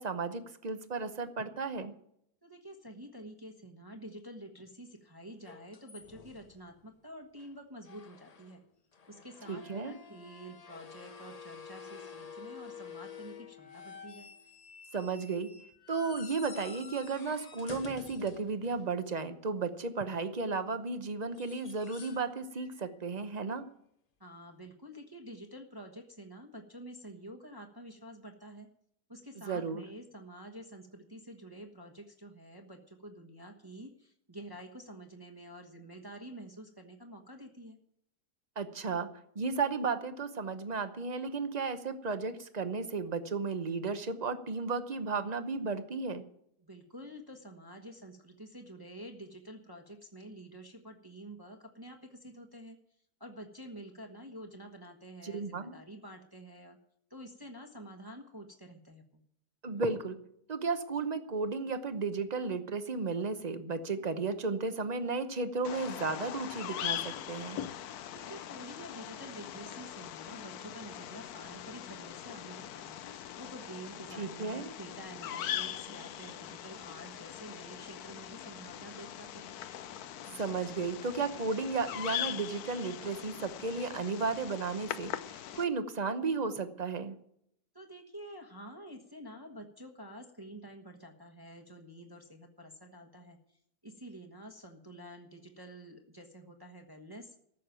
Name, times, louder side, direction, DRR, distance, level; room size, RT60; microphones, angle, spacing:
voice 1, 0.0-1.9 9.5-10.0 14.9-15.5 15.9-23.6 29.5-29.8 38.6-39.1 39.3-46.2 55.2-55.8 59.6-60.2 60.5-67.6 74.2-74.7 80.4-87.2, right 4 dB, 35° right, 10 dB, 0.8 m, -34 dB
voice 2, 2.4-8.6 9.1-14.3 24.2-28.7 29.1-37.8 46.6-52.8 53.2-56.8 57.1-59.2 68.0-73.0 73.4-79.6 87.7-93.6 93.8-97.3, right 1 dB, 15° right, 3 dB, 1.1 m, -49 dB
sound 1, 5.4-6.7 7.4-7.5 7.8-8.6 8.9-19.2 21.2-22.3 22.6-22.9 24.7-24.8, left 6 dB, 40° left, 0.6 m, -50 dB
Bird vocalization bird call bird song, 65.6-85.6, left 11 dB, 70° left, 1.1 m, -41 dB
14.0 x 6.6 x 9.1 m, 0.72 s
omnidirectional pair, 1.7 m